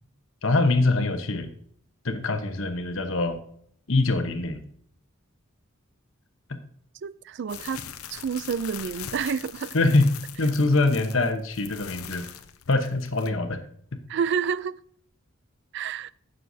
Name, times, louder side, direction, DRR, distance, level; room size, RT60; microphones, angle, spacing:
voice 1, 0.4-1.5 2.0-3.4 3.9-4.6 9.7-10.1 10.4-12.3 12.7-13.6 13.9-14.0, left 2 dB, 65° left, 1.1 m, -23 dB
voice 2, 7.0-7.8 8.1-9.8 14.1-14.7 15.7-16.1, right 6 dB, 55° right, 0.3 m, -29 dB
sound 1, 7.5-13.3, left 9 dB, 85° left, 0.7 m, -41 dB
15.5 x 6.6 x 2.7 m
head